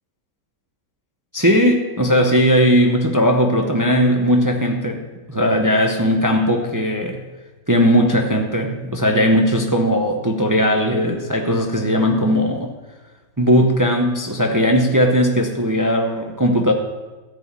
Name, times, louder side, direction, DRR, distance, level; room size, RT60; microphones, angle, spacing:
voice 1, 1.3-5.0 5.3-7.2 7.7-12.7 13.4-16.7, equal, 30° right, 3 dB, 0.3 m, -18 dB
13.0 x 4.9 x 8.3 m, 1.2 s
omnidirectional pair, 1.9 m